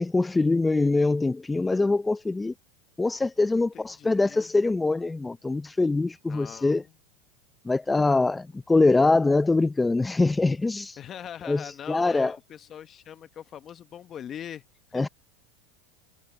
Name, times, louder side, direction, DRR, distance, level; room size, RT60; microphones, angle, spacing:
voice 1, 0.0-2.5 3.0-6.8 7.6-11.0 11.4-12.4 14.9-15.1, left 3 dB, 10° left, 0.6 m, -23 dB
voice 2, 3.5-4.5 6.3-6.9 11.0-14.6 14.9-15.1, left 9 dB, 35° left, 1.1 m, -41 dB
supercardioid pair, 125°, 0 cm